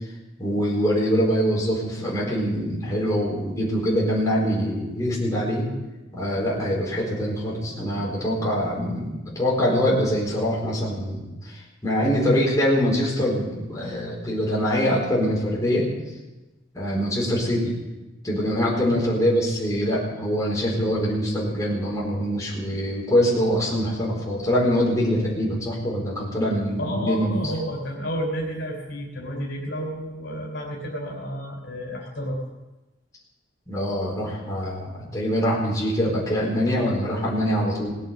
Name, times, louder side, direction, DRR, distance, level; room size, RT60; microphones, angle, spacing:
voice 1, 0.4-5.7 6.1-15.9 16.7-17.8 18.2-27.4 33.7-37.9, equal, 15° left, -5 dB, 4.4 m, -24 dB
voice 2, 26.8-32.4, equal, 70° left, 0 dB, 3.5 m, -31 dB
19.0 x 7.9 x 7.2 m, 1.1 s
head